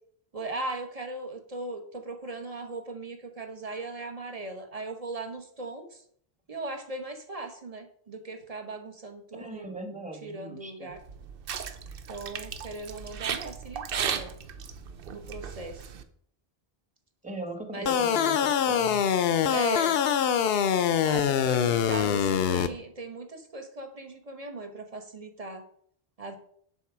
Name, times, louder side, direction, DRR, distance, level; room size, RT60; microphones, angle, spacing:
voice 1, 0.3-6.0 6.5-9.7 10.2-11.0 12.1-14.3 15.1-15.9 17.7-17.9 19.4-20.0 21.0-25.6 26.2-26.4, right 2 dB, 40° right, 5 dB, 1.1 m, -38 dB
voice 2, 9.3-10.9 17.2-19.1, right 2 dB, 10° right, 4 dB, 1.1 m, -39 dB
sound 1, 11.0-16.0, right 7 dB, 65° right, 0.8 m, -36 dB
sound 2, 17.9-22.7, left 8 dB, 75° left, 0.8 m, -24 dB
7.1 x 4.2 x 6.0 m, 0.63 s
omnidirectional pair, 1.0 m